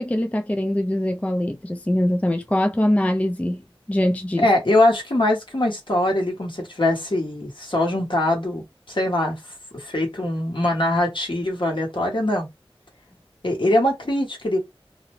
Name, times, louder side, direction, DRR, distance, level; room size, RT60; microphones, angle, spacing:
voice 1, 0.0-4.5, left 1 dB, 15° left, 0.3 m, -23 dB
voice 2, 4.4-9.4 9.7-12.5 13.4-14.6, left 1 dB, 55° left, 1.1 m, -22 dB
2.6 x 2.0 x 3.1 m
wide cardioid pair, 50°, 10 cm